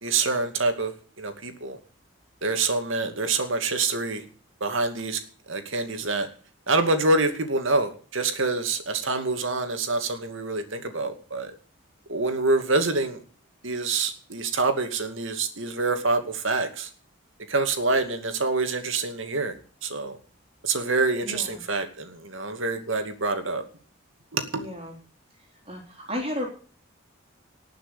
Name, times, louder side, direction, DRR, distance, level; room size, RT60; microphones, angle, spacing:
voice 1, 0.0-1.8 2.4-4.2 4.6-5.2 5.5-6.3 6.7-11.6 12.1-13.2 13.6-16.9 17.5-20.2 20.6-23.6 24.3-24.6, right 3 dB, 70° right, 7 dB, 2.4 m, -26 dB
voice 2, 21.2-21.6 24.5-24.9 25.7-26.5, left 1 dB, 30° right, 2 dB, 3.7 m, -33 dB
19.0 x 6.7 x 8.3 m, 0.42 s
head